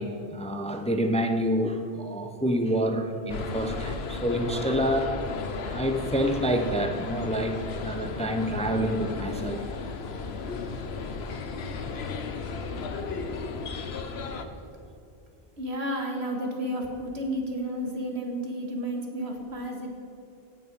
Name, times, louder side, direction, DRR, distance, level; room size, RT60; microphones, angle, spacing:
voice 1, 0.0-5.1 5.6-9.7, equal, 10° left, 5 dB, 0.6 m, -27 dB
sound 1, 3.3-14.4, left 4 dB, 80° left, 1.1 m, -34 dB
voice 2, 15.6-19.9, equal, 85° right, 1 dB, 2.0 m, -32 dB
17.0 x 6.1 x 5.4 m, 2.8 s
omnidirectional pair, 1.1 m